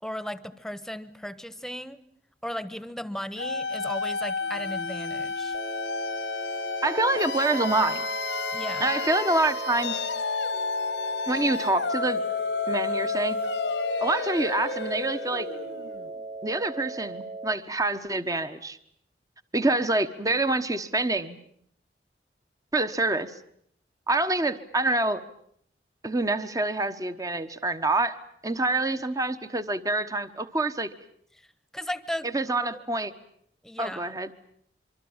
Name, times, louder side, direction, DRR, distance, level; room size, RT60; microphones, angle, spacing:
voice 1, 0.0-2.0 2.4-5.6 8.5-8.9 31.7-32.3 32.6-32.7 33.6-34.1, equal, 5° left, 14 dB, 1.2 m, -36 dB
sound 1, 3.4-16.2, left 4 dB, 80° left, 1.5 m, -31 dB
sound 2, 5.5-17.5, right 2 dB, 40° right, 3.0 m, -39 dB
voice 2, 6.8-8.0 8.8-10.0 11.3-12.2 12.7-13.4 14.0-15.5 16.4-18.8 19.5-21.4 22.7-23.4 24.1-25.2 26.0-28.2 28.4-30.9 32.2-33.1 33.8-34.3, right 2 dB, 20° right, 10 dB, 1.2 m, -26 dB
25.5 x 24.5 x 8.9 m, 0.67 s
head